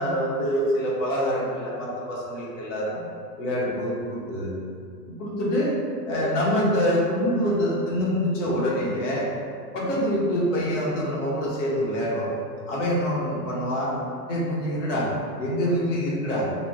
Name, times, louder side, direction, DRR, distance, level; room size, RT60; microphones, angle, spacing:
voice 1, 0.0-3.0 3.4-4.5 5.2-5.7 6.1-9.3 9.7-12.3 12.7-13.9 14.3-15.1 15.4-16.5, equal, 50° left, -5 dB, 0.9 m, -25 dB
2.4 x 2.1 x 3.5 m, 2.3 s
figure-of-eight pair, 105°, 48 cm